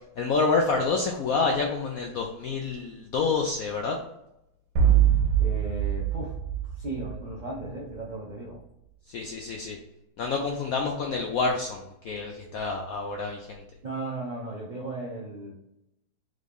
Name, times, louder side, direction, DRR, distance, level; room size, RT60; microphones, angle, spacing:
voice 1, 0.2-4.0 9.1-9.8 10.2-13.6, left 4 dB, 80° left, 2 dB, 0.7 m, -28 dB
sound 1, 4.8-7.6, right 9 dB, 65° right, 1.2 m, -23 dB
voice 2, 5.4-6.4 6.6-8.6 13.8-15.5, right 2 dB, 90° right, -4 dB, 0.4 m, -36 dB
3.8 x 3.2 x 3.4 m, 0.85 s
omnidirectional pair, 2.1 m